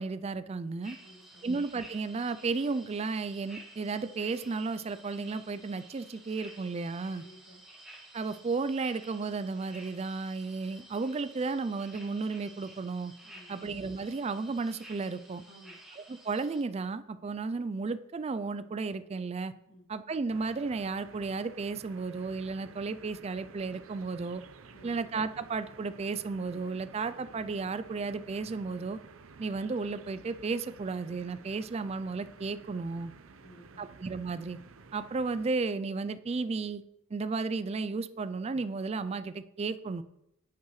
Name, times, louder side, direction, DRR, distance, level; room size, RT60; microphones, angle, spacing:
voice 1, 0.0-1.0 1.4-7.2 8.1-13.1 13.5-15.4 16.0-19.5 19.9-24.4 24.8-29.0 29.4-33.1 33.8-34.6 34.9-36.8 37.1-40.0, right 4 dB, 30° right, 13 dB, 0.3 m, -33 dB
sound 1, 0.8-16.6, right 1 dB, ahead, 1.5 m, -53 dB
voice 2, 1.0-1.5 7.2-7.7 13.2-13.6 15.5-15.8 19.7-19.9 24.7-25.0 33.4-33.9, equal, 65° left, 2 dB, 1.6 m, -55 dB
sound 2, 20.3-35.5, right 4 dB, 85° right, 0.7 m, -53 dB
11.0 x 8.3 x 3.2 m, 0.83 s
head